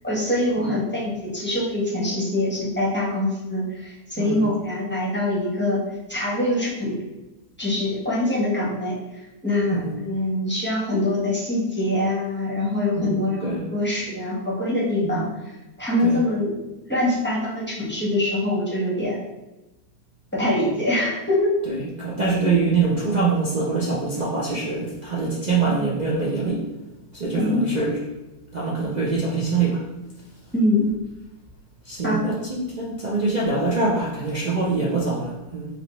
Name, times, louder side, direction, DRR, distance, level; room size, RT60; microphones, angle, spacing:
voice 1, 0.0-5.8 6.1-7.0 7.6-15.3 15.8-16.5 16.9-19.2 20.3-21.5 27.3-27.7 30.5-30.9 32.0-32.2, left 1 dB, 10° left, -6 dB, 1.0 m, -24 dB
voice 2, 4.2-4.5 9.7-10.0 13.0-13.6 15.0-15.2 16.0-16.2 21.7-26.7 27.1-28.0 28.5-29.8 31.8-35.7, right 4 dB, 80° right, -5 dB, 0.4 m, -24 dB
5.0 x 3.2 x 3.1 m, 1.0 s
omnidirectional pair, 1.8 m